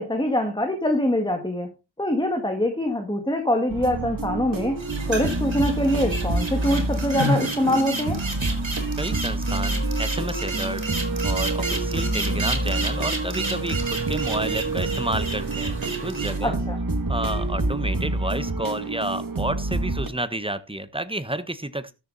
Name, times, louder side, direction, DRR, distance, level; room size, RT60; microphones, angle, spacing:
voice 1, 0.0-1.7 2.0-4.8 5.1-8.2 16.4-16.8, left 1 dB, 10° left, 5 dB, 2.0 m, -24 dB
sound 1, 3.7-20.1, right 2 dB, 45° right, 1.7 m, -27 dB
sound 2, 4.8-16.4, right 2 dB, 70° right, 3.4 m, -31 dB
voice 2, 9.0-10.8 11.2-16.6 17.1-21.9, right 1 dB, 10° right, 12 dB, 1.2 m, -30 dB
13.0 x 7.3 x 4.1 m, 0.29 s
wide cardioid pair, 40°, 47 cm